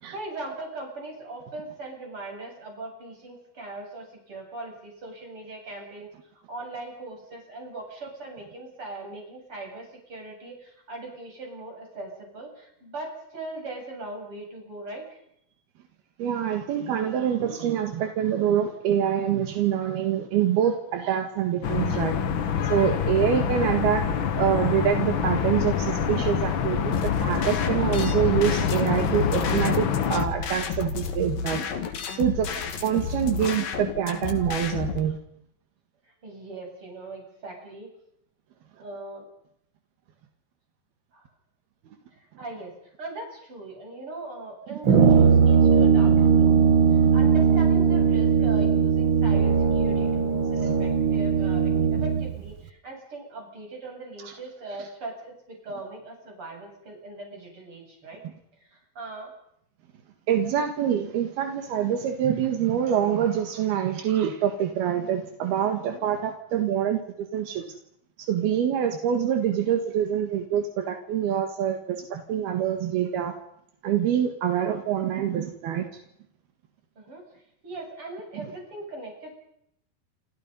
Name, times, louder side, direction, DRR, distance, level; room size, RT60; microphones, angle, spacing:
voice 1, 0.1-6.1 6.5-15.2 23.1-23.3 36.2-37.9 38.8-39.3 41.1-41.3 42.1-46.5 46.9-58.2 58.6-59.3 65.8-66.1 77.0-77.4 77.6-79.4, right 2 dB, 35° right, 1 dB, 9.0 m, -40 dB
voice 2, 16.2-22.2 22.6-24.0 24.4-31.6 32.1-32.5 32.8-35.2 44.7-44.8 54.2-54.3 60.3-67.6 68.2-73.4 73.8-75.9, right 9 dB, 80° right, 6 dB, 3.7 m, -25 dB
sound 1, 21.6-30.3, left 7 dB, 90° left, 1.0 m, -26 dB
sound 2, 26.9-35.0, left 5 dB, 65° left, 4.1 m, -32 dB
Brass instrument, 44.8-52.3, right 6 dB, 60° right, 1.3 m, -19 dB
29.0 x 27.5 x 5.5 m, 0.74 s
omnidirectional pair, 4.4 m